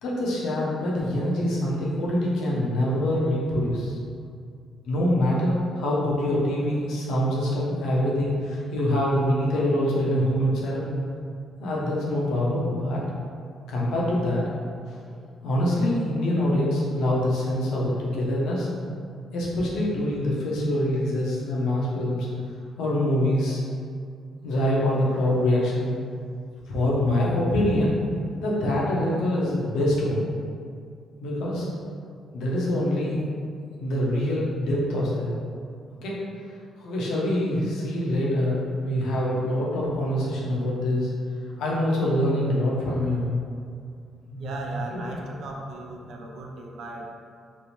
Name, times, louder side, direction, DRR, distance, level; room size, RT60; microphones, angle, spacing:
voice 1, 0.0-4.0 4.8-10.9 11.6-13.0 13.7-14.5 14.9-15.0 15.4-18.7 19.3-22.3 22.8-23.6 24.4-25.9 26.7-27.9 28.4-30.3 31.2-31.7 32.3-33.2 33.8-35.3 36.0-36.2 36.8-41.1 41.6-43.3 44.3-44.4, left 1 dB, 85° left, -5 dB, 0.6 m, -25 dB
voice 2, 44.3-47.1, right 2 dB, 75° right, 0 dB, 0.4 m, -36 dB
3.1 x 2.0 x 2.8 m, 2.3 s
cardioid pair, 90°, 0 cm